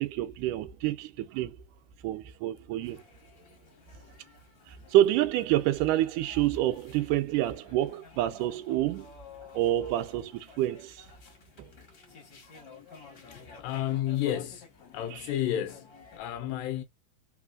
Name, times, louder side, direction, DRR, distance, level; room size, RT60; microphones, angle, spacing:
voice 1, 0.0-1.6 2.0-3.0 4.7-9.1 9.5-11.1 11.6-11.7 12.7-12.8, right 13 dB, 80° right, 2.0 m, -28 dB
sound 1, 2.8-16.2, left 5 dB, 45° left, 1.8 m, -53 dB
voice 2, 13.2-16.8, left 12 dB, 80° left, 2.1 m, -32 dB
4.3 x 4.0 x 2.3 m
omnidirectional pair, 4.0 m